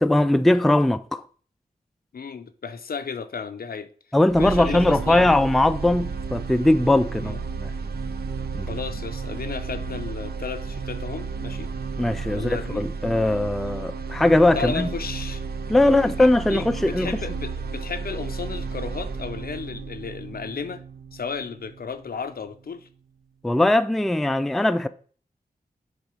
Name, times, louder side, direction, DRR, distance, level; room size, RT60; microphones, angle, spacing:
voice 1, 0.0-1.2 4.1-7.7 8.5-8.7 12.0-14.9 15.7-17.2 23.4-24.9, left 1 dB, ahead, 0.3 m, -20 dB
voice 2, 2.1-3.9 4.4-5.3 7.2-7.4 8.7-11.7 12.3-12.8 14.5-15.4 15.8-20.8 21.1-22.9, left 5 dB, 70° left, 0.6 m, -34 dB
sound 1, 4.3-22.3, right 4 dB, 85° right, 0.6 m, -33 dB
6.7 x 3.7 x 4.8 m
wide cardioid pair, 75°, 16 cm